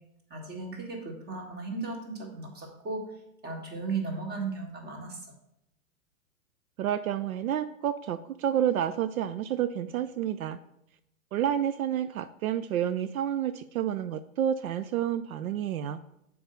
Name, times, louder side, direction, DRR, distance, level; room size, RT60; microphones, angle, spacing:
voice 1, 0.3-3.0 3.4-5.2, right 4 dB, 25° right, 2 dB, 1.8 m, -36 dB
voice 2, 6.8-10.6 11.3-16.0, right 10 dB, 80° right, 12 dB, 0.5 m, -29 dB
7.1 x 4.6 x 5.2 m, 0.81 s
hypercardioid pair, 115°, 42 cm